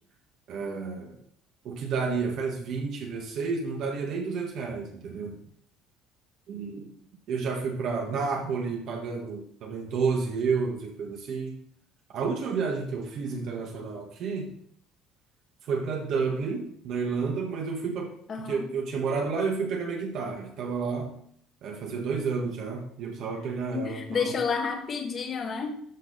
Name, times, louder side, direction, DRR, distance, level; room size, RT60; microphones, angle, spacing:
voice 1, 0.5-1.1 1.6-5.4 6.5-6.9 7.3-11.5 12.1-14.5 15.7-18.1 18.4-21.1 21.6-24.3, right 5 dB, 50° right, 1 dB, 1.7 m, -30 dB
voice 2, 18.3-18.7 23.7-25.8, left 5 dB, 30° left, 4 dB, 1.3 m, -30 dB
13.0 x 5.8 x 4.1 m, 0.65 s
cardioid pair, 165°, 0 cm